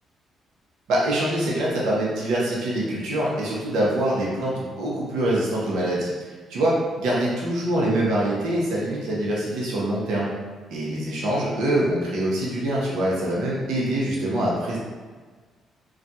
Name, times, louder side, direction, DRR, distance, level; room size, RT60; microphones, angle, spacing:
voice 1, 0.9-10.3 10.7-14.8, right 1 dB, 85° right, -5 dB, 0.8 m, -24 dB
2.4 x 2.3 x 4.0 m, 1.4 s
cardioid pair, 90°, 0 cm